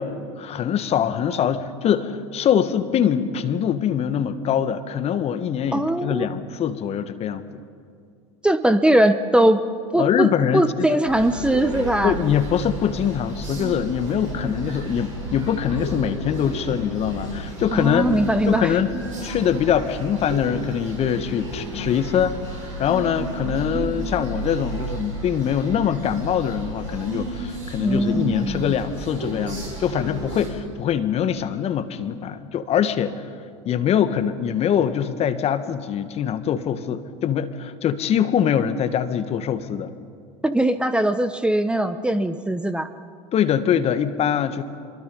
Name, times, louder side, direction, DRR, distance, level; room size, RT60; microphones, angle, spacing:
voice 1, 0.0-7.4 10.0-11.0 12.0-18.1 18.5-19.0 19.2-33.1 33.6-39.9 43.3-44.6, left 8 dB, 40° left, 11 dB, 1.5 m, -23 dB
voice 2, 5.7-6.3 8.4-9.6 9.9-12.1 17.7-18.7 23.4-24.2 27.8-28.8 40.4-42.9, right 1 dB, 5° right, 10 dB, 1.0 m, -21 dB
sound 1, 11.0-30.5, right 2 dB, 90° right, 6.6 m, -33 dB
25.5 x 22.5 x 5.4 m, 2.2 s
hypercardioid pair, 80°, 16 cm